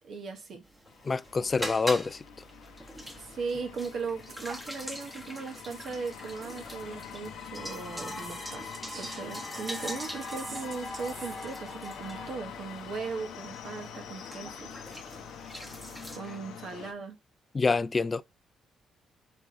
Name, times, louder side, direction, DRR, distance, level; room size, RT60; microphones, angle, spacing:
voice 1, 0.0-0.6 3.2-14.7 15.2-15.5 16.1-17.2, right 5 dB, 60° right, 1.0 m, -38 dB
sound 1, 0.7-16.2, equal, 5° right, 1.1 m, -42 dB
sound 2, 0.9-16.9, left 8 dB, 85° left, 0.7 m, -45 dB
voice 2, 1.0-2.2 17.5-18.2, left 4 dB, 30° left, 0.3 m, -26 dB
sound 3, 4.3-7.0 7.9-9.3 9.7-11.5, right 5 dB, 45° right, 0.5 m, -47 dB
4.3 x 3.7 x 2.6 m
cardioid pair, 90°, 0 cm